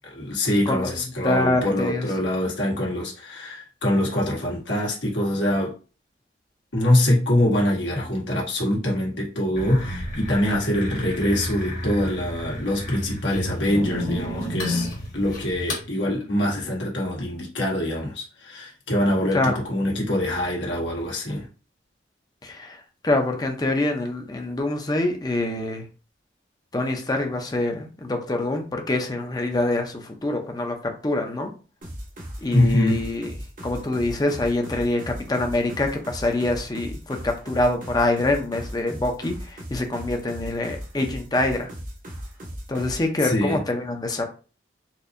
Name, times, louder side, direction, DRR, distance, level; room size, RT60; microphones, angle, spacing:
voice 1, 0.1-5.7 6.7-14.9 15.1-21.4 32.5-33.0 43.2-43.6, left 1 dB, 80° left, 1.5 m, -24 dB
voice 2, 0.7-2.1 19.3-19.6 22.4-25.8 26.7-31.5 32.4-33.3 33.6-41.7 42.7-44.2, left 2 dB, 20° left, 0.5 m, -25 dB
sound 1, 9.5-15.8, left 1 dB, 45° left, 1.2 m, -31 dB
sound 2, 31.8-43.1, equal, 45° right, 0.8 m, -37 dB
4.2 x 2.6 x 2.6 m
head